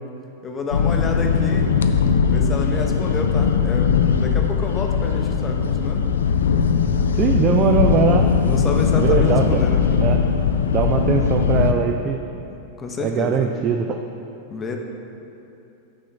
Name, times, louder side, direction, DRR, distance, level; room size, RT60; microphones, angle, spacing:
voice 1, 0.4-1.8 2.3-6.1 8.5-10.0 12.5-13.5 14.5-14.8, left 3 dB, 20° left, 2 dB, 0.7 m, -29 dB
sound 1, 0.7-11.7, left 6 dB, 65° left, 0.3 m, -19 dB
voice 2, 7.1-8.3 9.0-9.6 10.0-10.2 10.7-12.2 13.0-14.0, right 7 dB, 30° right, 5 dB, 0.3 m, -21 dB
6.3 x 3.7 x 6.1 m, 2.8 s
figure-of-eight pair, 90°, 0 cm